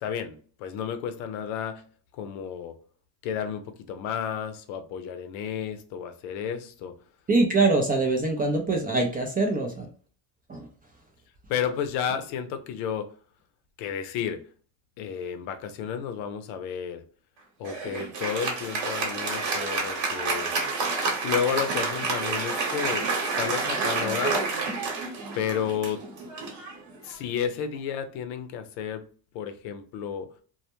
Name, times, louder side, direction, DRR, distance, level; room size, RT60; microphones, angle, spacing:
voice 1, 0.0-1.8 2.2-2.7 3.2-6.9 11.5-13.1 13.8-14.4 15.0-17.0 17.6-20.5 21.2-24.5 25.3-26.0 27.0-29.0 29.3-30.3, left 8 dB, 75° left, 0.6 m, -32 dB
voice 2, 7.3-9.9 10.5-10.7, right 3 dB, 20° right, 0.3 m, -23 dB
Applause, 17.6-27.4, right 4 dB, 60° right, 1.0 m, -29 dB
2.1 x 2.1 x 2.8 m
supercardioid pair, 85°, 48 cm